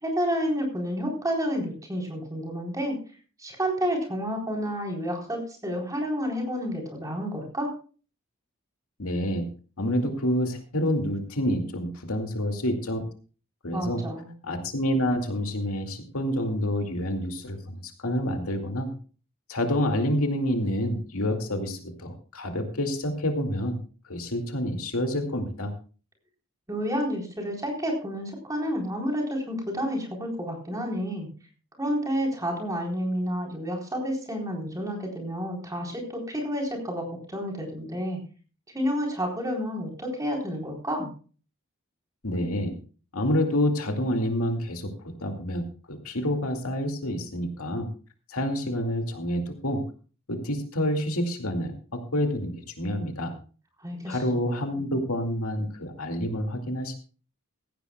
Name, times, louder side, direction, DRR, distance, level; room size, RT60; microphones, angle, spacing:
voice 1, 0.0-3.0 3.4-7.7 13.7-14.3 26.7-31.3 31.8-38.2 38.7-41.1 53.8-54.5, equal, 15° right, 0 dB, 4.0 m, -30 dB
voice 2, 9.0-9.5 9.8-13.0 13.6-14.0 14.4-18.9 19.5-23.8 24.0-25.7 42.2-42.8 43.1-47.9 48.3-49.8 50.3-53.3 54.1-57.0, equal, 80° left, 4 dB, 2.4 m, -28 dB
17.0 x 15.5 x 2.3 m, 0.37 s
head